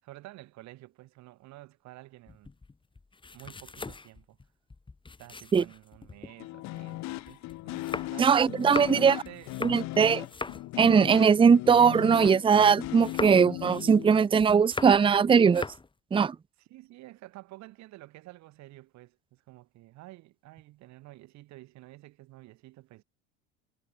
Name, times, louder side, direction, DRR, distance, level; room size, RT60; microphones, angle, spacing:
voice 1, 0.0-2.5 3.3-4.4 5.2-8.4 8.9-10.0 16.6-23.0, right 18 dB, 55° right, 7.9 m, -50 dB
sound 1, 2.3-6.3 6.8-12.6 12.8-15.2 15.4-15.9, left 3 dB, 15° left, 3.2 m, -40 dB
sound 2, 6.3-14.2, left 18 dB, 55° left, 4.0 m, -38 dB
voice 2, 8.2-9.2 9.6-10.2 10.8-15.6 16.1-16.4, right 6 dB, 15° right, 0.7 m, -20 dB
hypercardioid pair, 90°, 33 cm